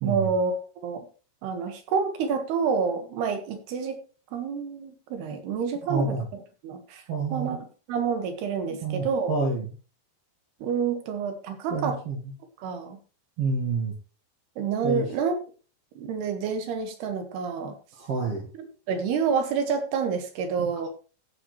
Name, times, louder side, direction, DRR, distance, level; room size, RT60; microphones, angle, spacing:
voice 1, 0.0-1.1 1.4-4.0 4.3-7.0 7.3-9.3 10.6-12.0 12.6-13.0 14.6-15.3 16.0-17.7 18.9-20.9, right 6 dB, 90° right, 6 dB, 3.8 m, -28 dB
voice 2, 5.9-6.3 7.1-7.6 8.8-9.7 11.7-12.3 13.4-13.9 14.8-15.1 18.0-18.5 20.6-20.9, right 3 dB, 50° right, -1 dB, 2.2 m, -28 dB
15.0 x 8.6 x 3.2 m, 0.36 s
omnidirectional pair, 4.5 m